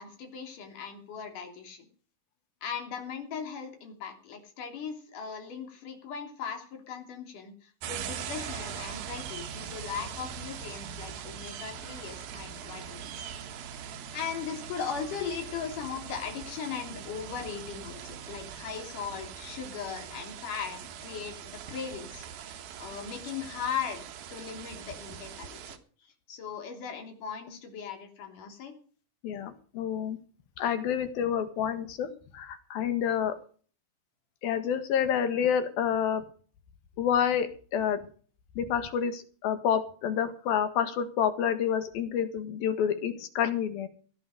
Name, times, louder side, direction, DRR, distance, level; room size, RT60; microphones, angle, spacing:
voice 1, 0.0-1.9 2.6-13.3 14.1-24.0 24.3-25.8 26.0-28.8, left 7 dB, 60° left, 4 dB, 4.7 m, -38 dB
sound 1, 7.8-25.8, right 8 dB, 80° right, 3.2 m, -41 dB
voice 2, 29.2-30.2 30.6-33.4 34.4-36.2 37.0-38.1 38.6-43.9, left 8 dB, 85° left, 10 dB, 3.5 m, -28 dB
17.0 x 11.5 x 5.0 m, 0.42 s
omnidirectional pair, 4.1 m